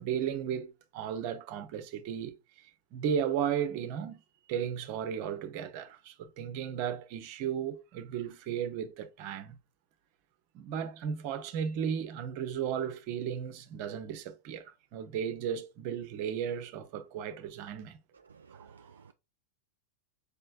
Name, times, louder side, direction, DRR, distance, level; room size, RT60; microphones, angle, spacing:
voice 1, 0.0-2.3 2.6-4.2 4.5-9.6 10.5-18.0 18.5-18.9, right 8 dB, 45° right, 0.7 m, -35 dB
voice 2, 18.1-19.1, right 5 dB, 70° right, 0.3 m, -56 dB
5.0 x 3.2 x 2.4 m
figure-of-eight pair, 90°, 0 cm